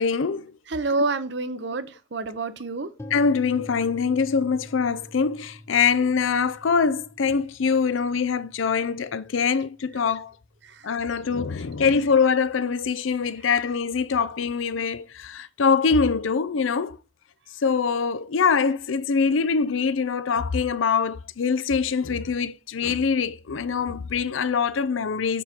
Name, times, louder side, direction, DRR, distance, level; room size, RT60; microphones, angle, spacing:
voice 1, 0.0-0.5 3.1-10.3 10.8-17.0 17.6-25.4, left 5 dB, 80° left, 0.5 m, -23 dB
voice 2, 0.7-2.9 10.6-10.9, right 3 dB, 60° right, 0.7 m, -28 dB
sound 1, 3.0-10.9, left 1 dB, 15° left, 0.6 m, -46 dB
7.2 x 5.6 x 4.3 m
head